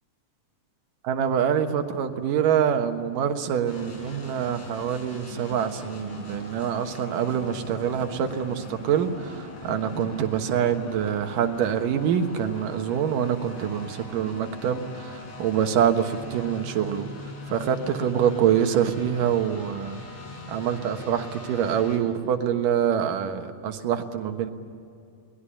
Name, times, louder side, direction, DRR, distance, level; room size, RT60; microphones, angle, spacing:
voice 1, 1.0-17.1 17.5-20.0 20.5-24.5, right 8 dB, 85° right, 6 dB, 3.0 m, -25 dB
sound 1, 3.7-22.0, left 2 dB, 55° left, 5.1 m, -41 dB
23.5 x 19.5 x 10.0 m, 2.4 s
omnidirectional pair, 3.7 m